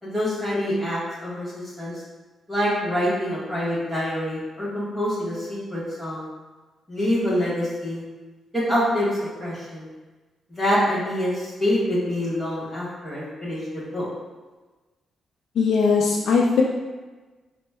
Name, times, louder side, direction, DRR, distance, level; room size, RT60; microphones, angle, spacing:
voice 1, 0.0-2.0 2.5-6.3 6.9-8.0 8.5-9.9 10.5-14.0, equal, ahead, -9 dB, 1.3 m, -26 dB
voice 2, 15.6-16.6, left 5 dB, 65° left, -2 dB, 0.4 m, -19 dB
4.2 x 2.0 x 3.4 m, 1.3 s
wide cardioid pair, 170°, 0 cm